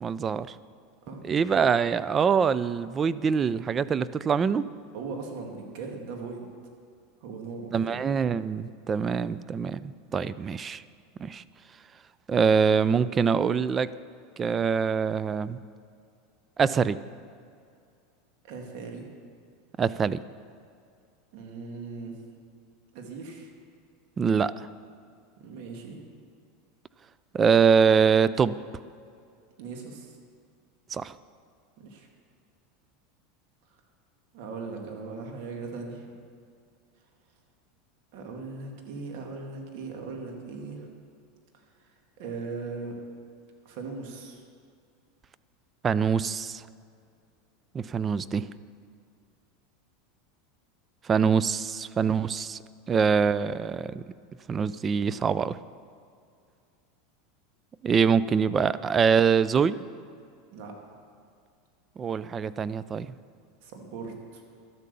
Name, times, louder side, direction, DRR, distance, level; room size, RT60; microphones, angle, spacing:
voice 1, 0.0-0.5 1.3-4.7 7.7-10.8 11.2-11.4 12.3-13.9 14.4-15.6 16.6-17.0 19.8-20.2 24.2-24.5 27.3-28.6 30.9-31.1 45.8-46.6 47.7-48.5 51.1-52.6 52.9-54.0 54.5-55.6 57.8-59.8 62.0-63.1, right 6 dB, 25° right, 16 dB, 0.4 m, -24 dB
voice 2, 4.9-6.5 7.2-8.0 18.4-19.1 21.3-22.2 22.9-23.5 25.4-26.0 29.6-30.2 31.8-32.1 34.3-36.1 38.1-40.9 42.2-43.0 43.6-44.4 60.5-60.7 63.6-64.4, right 4 dB, 65° right, 2 dB, 2.2 m, -39 dB
13.0 x 8.4 x 6.9 m, 2.4 s
supercardioid pair, 115°, 0 cm